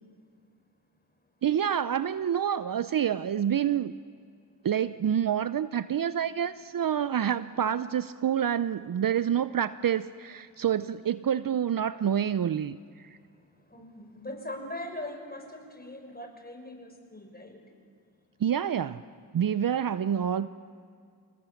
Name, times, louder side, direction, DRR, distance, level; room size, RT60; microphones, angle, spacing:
voice 1, 1.4-3.9 4.6-12.8 18.4-19.0 19.3-20.5, right 9 dB, 50° right, 15 dB, 0.6 m, -27 dB
voice 2, 13.7-17.6, left 1 dB, 20° left, 3 dB, 5.9 m, -41 dB
27.5 x 18.5 x 7.2 m, 2.3 s
cardioid pair, 45°, 43 cm